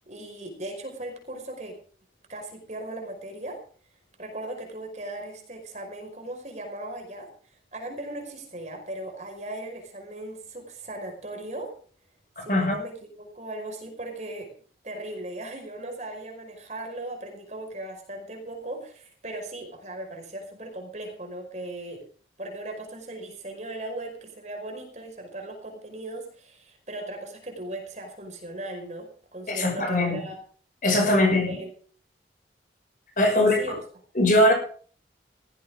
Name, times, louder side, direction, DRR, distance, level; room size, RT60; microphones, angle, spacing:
voice 1, 0.0-1.7 2.3-3.6 4.2-7.3 7.7-11.7 12.4-14.5 14.8-22.0 22.4-30.4 31.0-31.7 33.4-33.7, right 1 dB, 40° right, 3 dB, 5.2 m, -37 dB
voice 2, 29.5-30.2 30.8-31.6 33.2-33.7 34.1-34.5, left 1 dB, 45° left, 3 dB, 6.4 m, -21 dB
17.0 x 15.5 x 3.8 m, 0.43 s
head